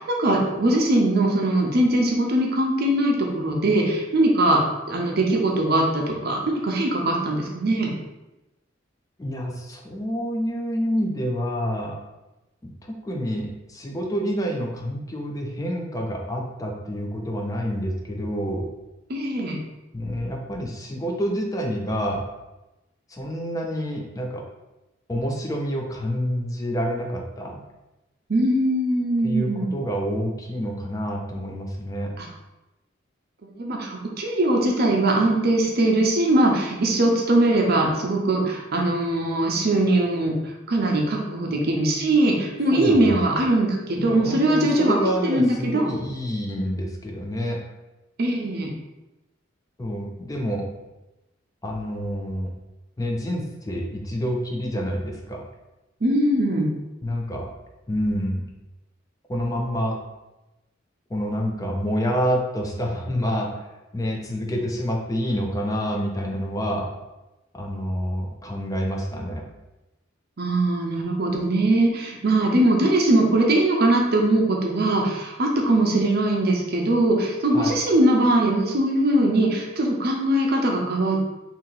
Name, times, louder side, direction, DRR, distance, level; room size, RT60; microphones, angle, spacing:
voice 1, 0.0-4.6 4.9-7.9 19.1-19.6 28.3-29.7 32.2-32.3 33.5-40.3 40.7-45.0 45.2-45.9 48.2-48.7 56.0-56.7 70.4-81.3, right 1 dB, 55° right, 0 dB, 0.7 m, -21 dB
voice 2, 9.2-12.0 12.6-12.7 13.0-18.7 19.9-22.2 23.1-24.4 25.1-27.6 29.2-32.1 42.7-43.1 44.0-47.6 49.8-50.7 51.6-52.5 53.0-55.5 57.0-57.5 57.9-58.5 59.3-60.0 61.1-63.7 63.9-66.9 67.5-69.4 77.5-77.8, equal, 20° left, 1 dB, 0.4 m, -28 dB
2.7 x 2.7 x 3.9 m, 1.0 s
head